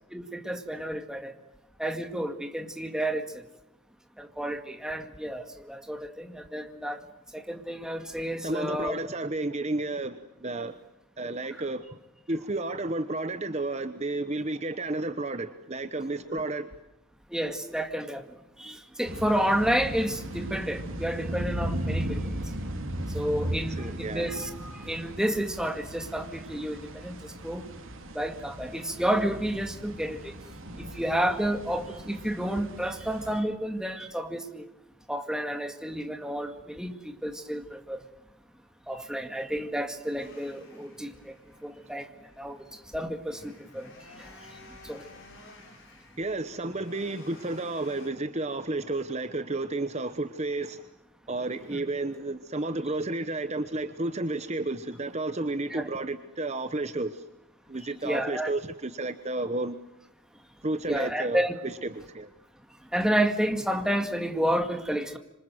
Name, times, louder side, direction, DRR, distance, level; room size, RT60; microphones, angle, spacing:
voice 1, 0.1-1.3 1.8-3.4 4.2-7.0 7.3-9.0 16.3-16.4 17.3-18.2 18.6-22.4 23.1-27.7 28.1-30.3 30.8-34.7 35.1-38.0 38.9-41.3 41.6-42.1 42.4-42.6 42.9-43.9 44.2-44.3 44.8-45.1 51.7-51.8 55.7-55.8 58.0-58.5 60.9-61.6 62.9-65.2, equal, 5° right, 6 dB, 2.0 m, -30 dB
voice 2, 8.4-10.8 11.2-12.0 12.3-16.7 23.8-24.3 46.2-50.9 51.3-57.3 57.7-59.8 60.6-62.3, right 2 dB, 30° right, 10 dB, 1.0 m, -32 dB
sound 1, 19.0-33.4, right 1 dB, 65° right, 3.4 m, -37 dB
sound 2, 40.2-48.1, left 2 dB, 55° left, 7.8 m, -53 dB
26.5 x 26.0 x 7.8 m, 0.91 s
head